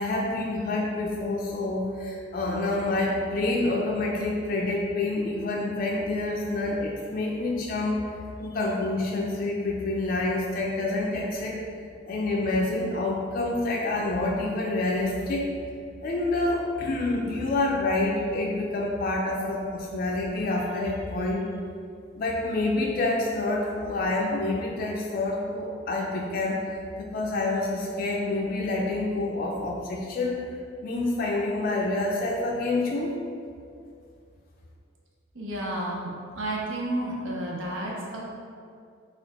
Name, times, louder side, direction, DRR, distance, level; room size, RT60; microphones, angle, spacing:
voice 1, 0.0-8.0 8.4-11.6 12.1-15.5 16.0-21.5 22.2-30.5 30.8-33.2, left 2 dB, 45° left, -2 dB, 0.3 m, -27 dB
voice 2, 35.3-38.2, right 1 dB, 85° right, -3 dB, 0.7 m, -31 dB
4.2 x 2.4 x 4.0 m, 2.4 s
head